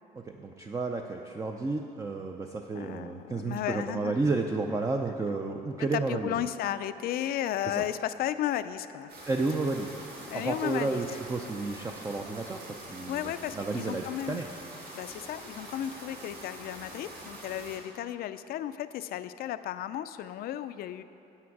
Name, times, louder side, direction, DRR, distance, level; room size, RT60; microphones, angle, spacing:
voice 1, 0.1-6.4 7.7-7.8 9.3-10.0 10.3-14.5, right 3 dB, 20° right, 3 dB, 0.4 m, -32 dB
voice 2, 2.7-4.2 4.7-4.8 5.9-9.1 10.3-11.0 13.1-14.4 14.9-21.0, left 11 dB, 65° left, 12 dB, 0.4 m, -34 dB
sound 1, 9.1-17.8, right 1 dB, 70° right, 2.2 m, -45 dB
8.5 x 8.4 x 4.7 m, 2.8 s
cardioid pair, 110°, 17 cm